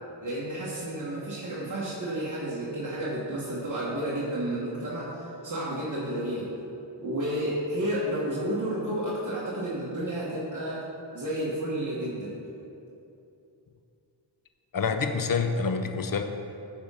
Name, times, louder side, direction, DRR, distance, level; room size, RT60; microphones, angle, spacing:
voice 1, 0.2-6.5 7.0-10.9 11.1-12.4, right 1 dB, 40° right, -7 dB, 1.3 m, -31 dB
voice 2, 14.7-16.2, left 5 dB, 45° left, 6 dB, 0.6 m, -27 dB
9.8 x 3.7 x 5.5 m, 2.8 s
wide cardioid pair, 50°, 46 cm